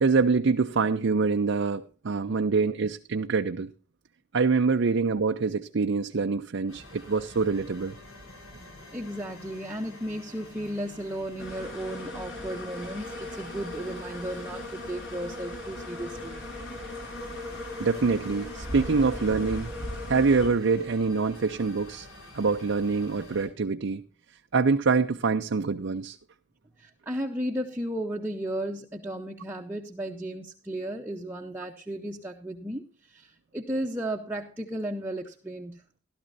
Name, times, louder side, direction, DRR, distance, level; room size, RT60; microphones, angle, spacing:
voice 1, 0.0-3.7 4.3-7.9 17.8-19.7 20.1-22.1 22.3-24.0 24.5-26.2, right 4 dB, 60° right, 0.5 m, -25 dB
sound 1, 6.7-23.5, left 1 dB, 85° left, 6.9 m, -48 dB
voice 2, 8.9-16.4 26.8-35.8, right 1 dB, 10° right, 0.8 m, -34 dB
sound 2, 11.4-20.5, left 1 dB, 60° left, 5.2 m, -38 dB
16.5 x 12.0 x 2.7 m
head